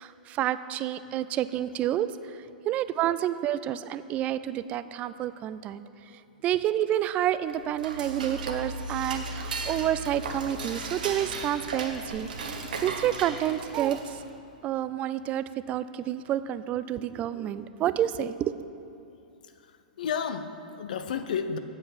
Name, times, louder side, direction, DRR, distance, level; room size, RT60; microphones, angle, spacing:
voice 1, 0.0-5.8 6.1-14.2 14.6-18.6, right 11 dB, 30° right, 14 dB, 0.3 m, -29 dB
Dishes pots and pans / Cutlery silverware, 7.4-14.3, right 3 dB, 65° right, 1.0 m, -36 dB
voice 2, 19.4-21.6, left 6 dB, 65° left, 9 dB, 0.6 m, -32 dB
7.8 x 7.7 x 5.9 m, 2.8 s
figure-of-eight pair, 105°, 5 cm